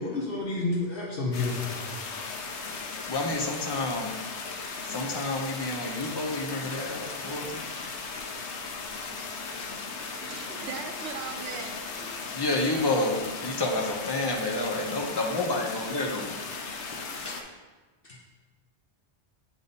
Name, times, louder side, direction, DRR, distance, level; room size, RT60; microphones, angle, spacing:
voice 1, 0.0-2.0 18.0-18.2, left 3 dB, 60° left, -2 dB, 1.0 m, -30 dB
sound 1, 1.3-17.4, left 4 dB, 85° left, 1.0 m, -37 dB
voice 2, 3.1-4.2 4.8-7.6 12.3-16.4 17.2-17.4, left 2 dB, 25° left, 0 dB, 0.7 m, -29 dB
voice 3, 10.2-12.2, right 6 dB, 80° right, 5 dB, 1.0 m, -39 dB
8.0 x 3.6 x 4.0 m, 1.3 s
omnidirectional pair, 1.1 m